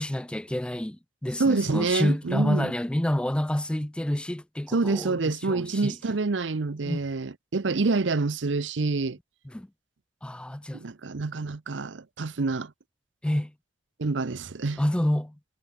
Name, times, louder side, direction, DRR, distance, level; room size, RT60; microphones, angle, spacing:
voice 1, 0.0-6.0 6.8-7.0 9.5-9.7 10.2-10.8 13.2-13.5 14.8-15.4, left 1 dB, 5° left, 0.4 m, -28 dB
voice 2, 1.4-2.7 4.7-9.2 10.7-12.7 14.0-14.8, right 3 dB, 75° right, 0.7 m, -27 dB
head